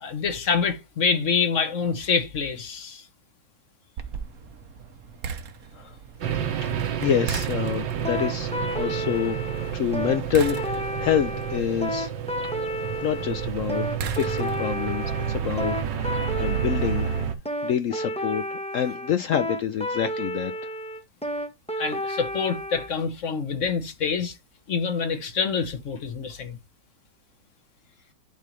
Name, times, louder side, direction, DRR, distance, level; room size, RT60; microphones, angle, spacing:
voice 1, 0.0-3.1 21.8-24.4 24.7-26.6, left 5 dB, 45° left, 1.4 m, -26 dB
sound 1, 4.0-14.9, right 6 dB, 60° right, 1.2 m, -40 dB
sound 2, 6.2-17.4, right 8 dB, 80° right, 1.8 m, -30 dB
voice 2, 7.0-9.4 9.7-12.1 13.0-17.1 17.6-20.5, left 9 dB, 75° left, 0.7 m, -27 dB
sound 3, 8.0-22.9, equal, 5° left, 0.5 m, -31 dB
11.0 x 3.7 x 3.1 m
omnidirectional pair, 1.9 m